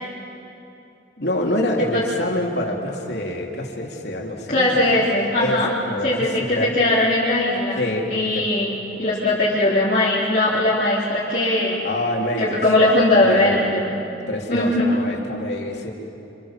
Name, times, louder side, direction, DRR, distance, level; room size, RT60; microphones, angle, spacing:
voice 1, 1.2-4.8 5.4-5.6 5.9-6.7 7.8-8.4 11.8-13.6 14.3-15.9, left 1 dB, 65° left, 0 dB, 3.7 m, -26 dB
voice 2, 4.5-5.7 6.0-7.8 8.1-11.8 12.4-13.9 14.5-15.0, left 1 dB, 45° left, -10 dB, 4.3 m, -20 dB
29.5 x 26.5 x 7.7 m, 2.9 s
head